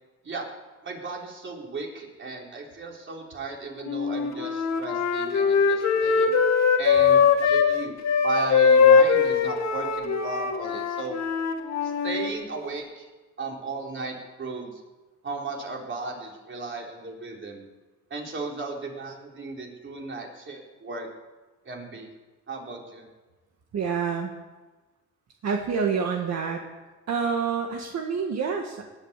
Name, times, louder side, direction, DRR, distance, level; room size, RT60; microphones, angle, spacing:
voice 1, 0.8-6.4 6.8-7.9 8.2-11.2 11.8-13.1 13.4-14.8 15.2-17.7 18.1-21.1 21.6-22.1 22.5-23.1, right 3 dB, 40° right, 0 dB, 4.1 m, -35 dB
Wind instrument woodwind instrument, 3.8-7.7 8.0-12.3, left 6 dB, 65° left, 2.5 m, -21 dB
voice 2, 23.7-24.3 25.4-26.6 27.1-28.8, right 6 dB, 60° right, 2 dB, 1.9 m, -27 dB
19.5 x 8.8 x 8.3 m, 1.2 s
cardioid pair, 90°, 30 cm